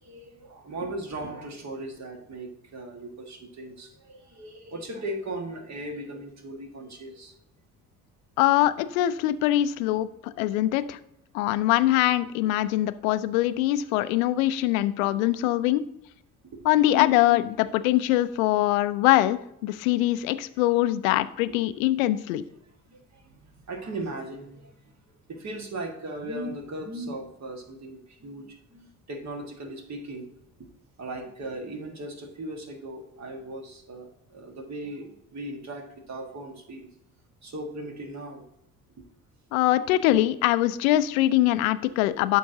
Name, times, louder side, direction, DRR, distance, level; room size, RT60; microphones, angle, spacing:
voice 1, 0.0-7.3 14.0-14.2 15.0-15.2 16.5-16.9 21.5-21.6 22.9-24.7 25.3-30.3 31.0-36.9 37.4-38.4, right 1 dB, 40° right, 4 dB, 1.6 m, -38 dB
voice 2, 8.4-11.0 11.3-15.8 16.6-22.4 39.5-42.4, left 15 dB, 70° left, 14 dB, 0.5 m, -23 dB
12.0 x 4.5 x 2.7 m, 0.79 s
figure-of-eight pair, 50°, 42 cm